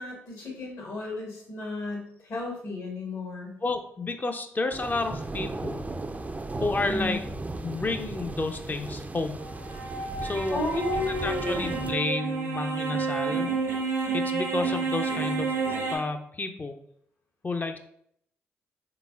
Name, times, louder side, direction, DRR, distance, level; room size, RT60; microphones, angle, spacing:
voice 1, 0.0-3.5 6.9-7.2 10.5-11.8, left 2 dB, 65° left, -2 dB, 1.5 m, -33 dB
voice 2, 3.6-5.8 6.6-7.2 7.6-9.4 10.0-10.8 11.2-13.5 14.1-15.6 15.9-16.8 17.4-17.8, left 3 dB, 30° left, 6 dB, 0.5 m, -31 dB
sound 1, 4.7-11.9, right 2 dB, 25° right, 0.4 m, -36 dB
sound 2, 9.4-16.0, right 4 dB, 85° right, 1.0 m, -30 dB
3.9 x 3.7 x 2.4 m, 0.69 s
hypercardioid pair, 45°, 6 cm